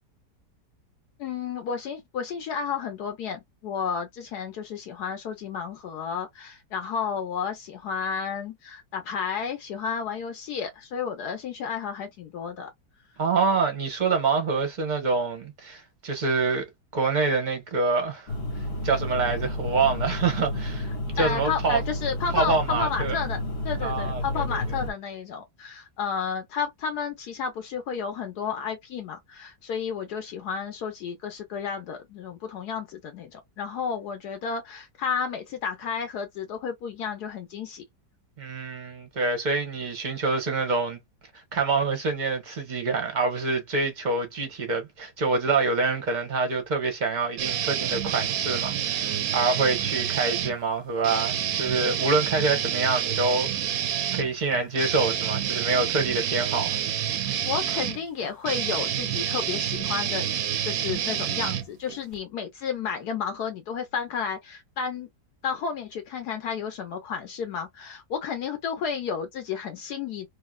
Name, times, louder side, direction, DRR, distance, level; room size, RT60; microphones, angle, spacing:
voice 1, 1.2-12.7 21.2-23.4 23.6-37.8 57.4-60.3 60.6-65.1 65.4-70.3, left 6 dB, 70° left, 1.1 m, -32 dB
voice 2, 13.2-16.6 16.9-18.3 18.8-20.9 21.1-21.8 22.3-23.1 23.8-24.6 38.4-41.0 41.5-53.7 54.1-56.8, right 4 dB, 35° right, 0.8 m, -26 dB
sound 1, 18.3-24.9, left 1 dB, 45° left, 1.0 m, -31 dB
sound 2, 47.4-50.5 51.0-62.2, right 10 dB, 65° right, 0.9 m, -28 dB
3.1 x 2.7 x 2.2 m
omnidirectional pair, 1.8 m